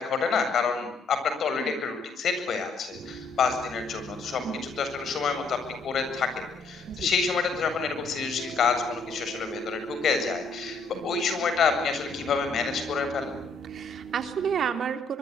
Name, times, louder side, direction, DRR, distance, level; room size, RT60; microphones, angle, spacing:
voice 1, 0.0-5.6 5.8-6.3 6.6-13.3, left 5 dB, 60° left, 9 dB, 7.8 m, -28 dB
sound 1, 2.9-14.7, right 6 dB, 75° right, 5.9 m, -41 dB
voice 2, 13.7-15.2, right 7 dB, 60° right, 8 dB, 3.3 m, -31 dB
24.5 x 23.5 x 8.2 m, 0.73 s
cardioid pair, 90°, 0 cm